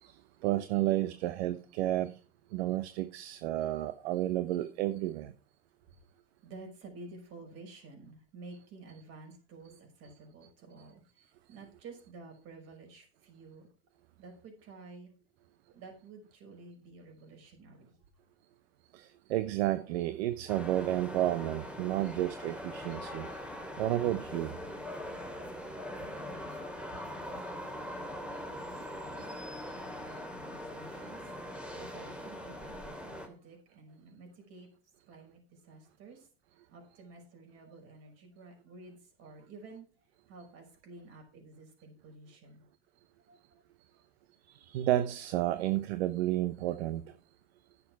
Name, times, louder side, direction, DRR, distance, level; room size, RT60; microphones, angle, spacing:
voice 1, 0.0-2.2 2.5-5.3 18.9-23.3 23.8-24.5 44.5-47.2, right 14 dB, 75° right, 0.9 m, -31 dB
voice 2, 6.4-13.7 14.2-15.1 15.7-17.9 25.9-29.3 29.7-34.7 35.1-36.3 36.7-39.9 40.3-42.6 43.3-43.6 43.9-44.0, right 3 dB, 50° right, 5.7 m, -52 dB
sound 1, 20.5-33.3, left 1 dB, 5° right, 2.8 m, -42 dB
10.0 x 7.1 x 5.7 m
supercardioid pair, 110°, 32 cm